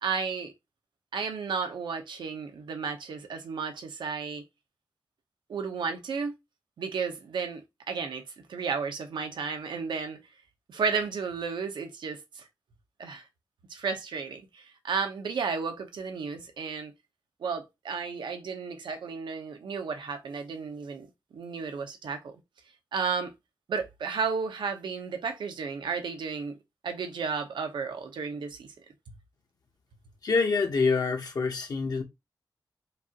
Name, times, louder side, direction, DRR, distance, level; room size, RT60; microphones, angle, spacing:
voice 1, 0.0-0.5 1.1-4.4 5.5-6.3 6.8-7.6 7.9-8.2 8.5-10.2 10.7-12.5 13.0-13.2 13.7-16.9 17.4-21.1 21.3-22.3 22.9-23.3 23.7-26.5 26.8-28.7, right 5 dB, 90° right, 0.9 m, -33 dB
voice 2, 30.2-32.0, left 4 dB, 55° left, 0.9 m, -26 dB
5.1 x 2.6 x 2.9 m
wide cardioid pair, 135°, 8 cm